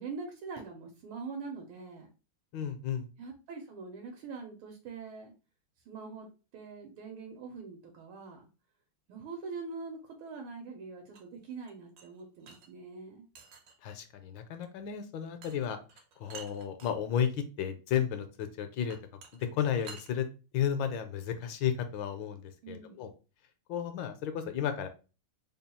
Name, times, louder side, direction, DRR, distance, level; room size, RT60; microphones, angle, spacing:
voice 1, 0.0-2.1 3.2-5.3 5.9-6.3 6.5-8.5 9.1-13.3 22.6-23.0, right 4 dB, 85° right, 2 dB, 1.6 m, -43 dB
voice 2, 2.5-3.1 13.8-15.8 16.2-19.0 19.4-20.3 20.5-23.1 23.7-24.9, left 8 dB, 75° left, 8 dB, 1.2 m, -33 dB
sound 1, 11.1-12.7 13.4-13.9 15.4-15.6 15.9-16.9 18.9-20.1, right 5 dB, 70° right, 1.3 m, -50 dB
3.6 x 2.3 x 4.1 m, 0.32 s
omnidirectional pair, 2.3 m